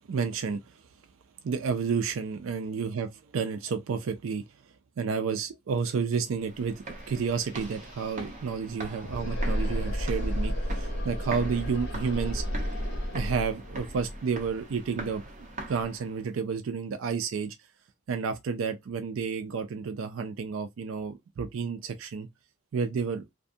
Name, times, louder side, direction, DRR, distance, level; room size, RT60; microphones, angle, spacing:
voice 1, 0.1-0.8 1.4-4.4 5.0-12.4 13.1-15.2 15.7-17.6 18.1-22.3 22.7-23.2, right 5 dB, 80° right, 0.4 m, -31 dB
sound 1, 6.3-16.3, right 2 dB, 40° right, 0.8 m, -43 dB
sound 2, 6.9-15.7, equal, 60° left, 0.8 m, -33 dB
2.5 x 2.3 x 2.6 m
head